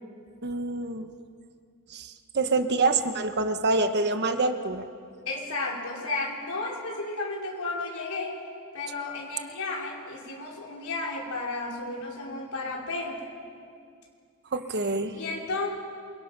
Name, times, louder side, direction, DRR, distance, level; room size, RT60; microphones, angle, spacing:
voice 1, 0.4-1.1 1.9-4.9 14.5-15.1, right 3 dB, 50° right, 8 dB, 1.3 m, -26 dB
voice 2, 5.3-8.4 8.7-13.3 15.1-15.7, left 3 dB, 75° left, -3 dB, 5.3 m, -33 dB
27.5 x 24.0 x 6.1 m, 2.3 s
head